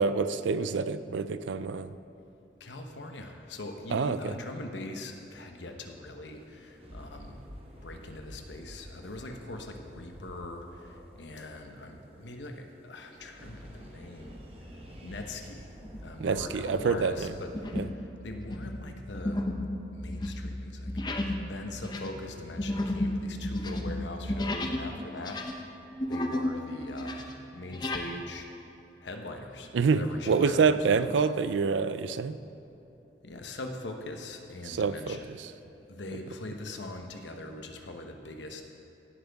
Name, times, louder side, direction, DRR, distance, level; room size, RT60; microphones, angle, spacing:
voice 1, 0.0-1.9 3.9-4.4 16.2-17.3 17.7-17.9 29.7-32.4 34.6-35.5, right 5 dB, 90° right, 13 dB, 0.4 m, -27 dB
voice 2, 2.6-7.4 7.8-14.4 15.0-15.7 16.0-17.5 18.0-19.4 19.9-25.4 26.1-27.2 27.5-28.5 29.0-30.6 30.9-31.1 33.2-35.3 35.9-38.6, left 2 dB, 80° left, 4 dB, 0.9 m, -41 dB
sound 1, 6.2-17.7, equal, 30° right, 1.1 m, -49 dB
sound 2, 15.8-16.2 16.7-16.9 17.5-18.0 18.3-24.9 25.2-26.6 26.9-28.1, left 1 dB, 25° left, 0.6 m, -33 dB
17.0 x 7.8 x 3.5 m, 2.8 s
head